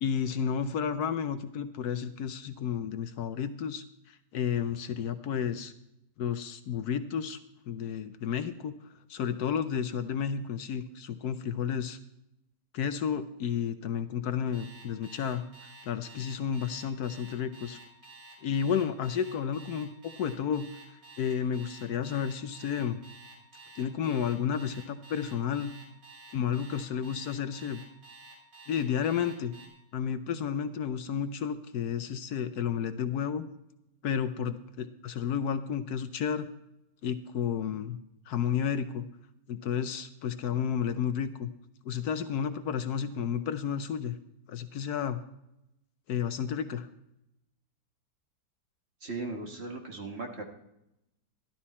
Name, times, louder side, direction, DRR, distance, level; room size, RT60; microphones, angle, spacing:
voice 1, 0.0-5.7 6.2-7.4 7.7-8.7 9.1-12.0 12.7-17.8 18.4-19.9 20.2-20.7 21.2-23.0 23.7-25.7 26.3-27.8 28.7-29.5 29.9-33.4 34.0-36.5 37.0-38.0 38.3-39.1 39.5-41.5 41.8-44.2 44.5-45.2 46.1-46.9, left 8 dB, 70° left, 10 dB, 1.1 m, -31 dB
Alarm, 14.5-29.7, right 3 dB, 80° right, 4.8 m, -51 dB
voice 2, 49.0-50.4, right 3 dB, 40° right, 3 dB, 1.6 m, -37 dB
13.0 x 12.0 x 4.2 m, 0.85 s
omnidirectional pair, 1.8 m